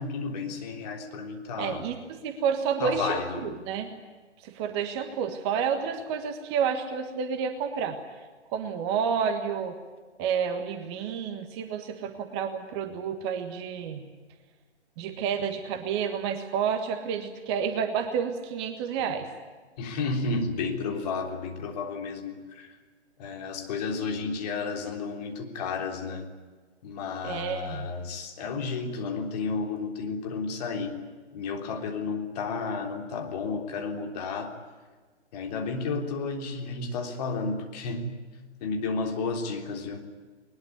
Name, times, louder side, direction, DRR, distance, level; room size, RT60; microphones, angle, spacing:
voice 1, 0.0-1.9 2.8-3.5 19.8-22.8 23.2-26.3 26.8-31.0 31.3-34.5 35.3-38.1 38.6-40.1, left 4 dB, 35° left, 3 dB, 3.5 m, -32 dB
voice 2, 1.6-3.9 4.4-8.0 8.5-9.7 10.2-14.0 15.0-19.3 27.2-27.9, right 7 dB, 25° right, 6 dB, 1.5 m, -30 dB
21.0 x 21.0 x 9.6 m, 1.4 s
figure-of-eight pair, 140°, 35 cm